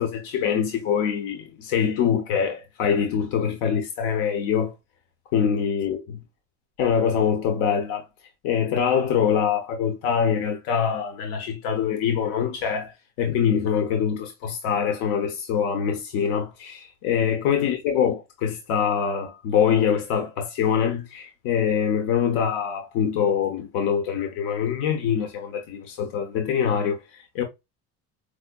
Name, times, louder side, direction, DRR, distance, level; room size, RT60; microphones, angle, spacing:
voice 1, 0.0-4.7 5.3-6.2 6.8-8.0 8.4-27.4, left 7 dB, 75° left, 0.9 m, -24 dB
4.8 x 2.2 x 2.3 m
cardioid pair, 155°, 30 cm